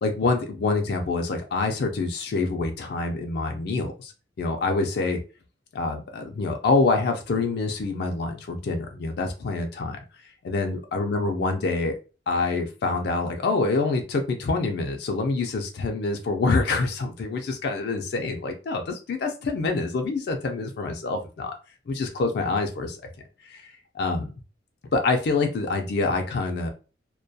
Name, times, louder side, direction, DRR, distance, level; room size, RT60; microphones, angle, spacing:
voice 1, 0.0-4.1 4.4-5.2 5.7-10.0 10.4-12.0 12.3-21.5 21.9-23.0 23.4-24.3 24.9-26.7, left 3 dB, 60° left, 4 dB, 0.4 m, -26 dB
2.2 x 2.2 x 2.6 m, 0.34 s
head